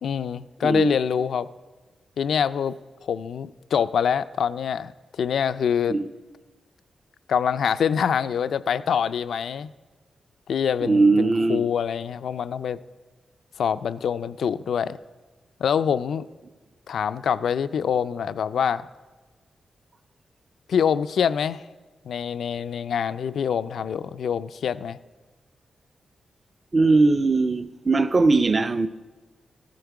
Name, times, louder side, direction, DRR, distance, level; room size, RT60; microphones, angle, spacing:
voice 1, 0.0-1.5 2.2-2.8 3.0-6.0 7.3-9.7 10.5-12.8 13.6-15.0 15.6-16.3 16.9-18.9 20.7-21.6 22.1-25.0, left 7 dB, 75° left, 0.3 m, -25 dB
voice 2, 10.8-11.7 26.7-28.9, right 3 dB, 30° right, 0.4 m, -20 dB
15.0 x 11.5 x 4.7 m
wide cardioid pair, 140°, 0 cm